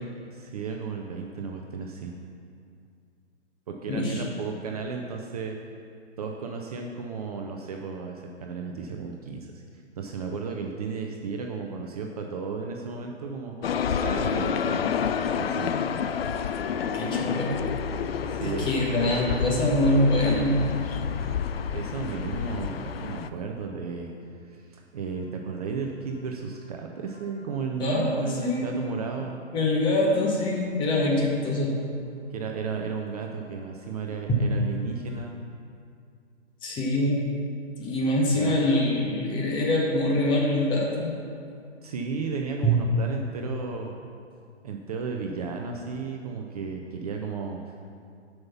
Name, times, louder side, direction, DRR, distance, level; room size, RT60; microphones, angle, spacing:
voice 1, 0.3-2.1 3.7-5.6 6.2-9.6 10.0-13.5 13.9-14.8 15.4-15.7 18.3-18.7 19.0-19.1 21.7-24.1 24.5-29.4 32.3-35.4 38.3-38.6 41.8-43.9 44.6-47.6, right 5 dB, 35° right, 2 dB, 0.6 m, -34 dB
voice 2, 3.9-4.2 16.9-17.6 18.4-20.6 27.8-28.8 29.5-31.7 36.6-37.3 37.8-41.2 42.6-42.8, left 1 dB, 15° left, -2 dB, 1.1 m, -24 dB
sound 1, 13.6-23.3, left 7 dB, 60° left, 0.5 m, -29 dB
sound 2, 17.5-21.5 27.1-28.6 28.8-29.0 35.1-35.2, left 3 dB, 80° left, 2.2 m, -39 dB
7.7 x 5.7 x 5.7 m, 2.3 s
figure-of-eight pair, 130°, 35 cm